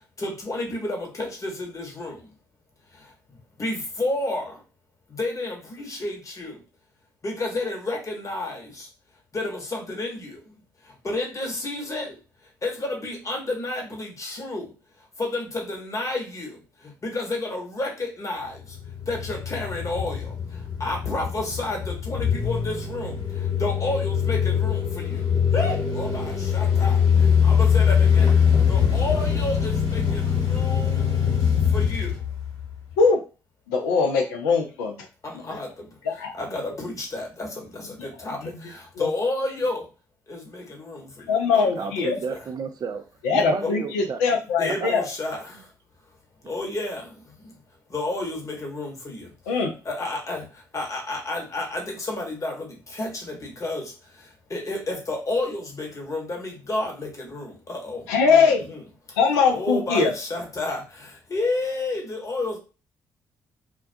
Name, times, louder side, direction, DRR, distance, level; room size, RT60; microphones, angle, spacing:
voice 1, 0.2-2.2 3.0-4.6 5.1-6.6 7.2-8.9 9.3-10.4 10.9-12.2 12.6-14.7 15.2-18.8 19.1-25.2 25.5-28.3 28.7-31.1 31.7-32.1 35.2-39.9 40.3-42.5 43.6-43.7 44.6-45.7 46.4-47.5 47.9-58.8 59.5-62.6, left 2 dB, 35° left, 1.0 m, -31 dB
sound 1, 18.6-32.9, left 7 dB, 60° left, 1.2 m, -22 dB
voice 2, 33.7-35.1 35.4-35.6 36.1-36.4 38.4-38.5 39.0-39.1 41.3-42.2 43.2-45.0 49.5-49.7 58.1-58.7 59.2-60.1, left 5 dB, 80° left, 0.4 m, -21 dB
voice 3, 41.8-44.2 44.8-44.9, right 5 dB, 45° right, 0.4 m, -32 dB
2.2 x 2.2 x 2.6 m
hypercardioid pair, 45°, 9 cm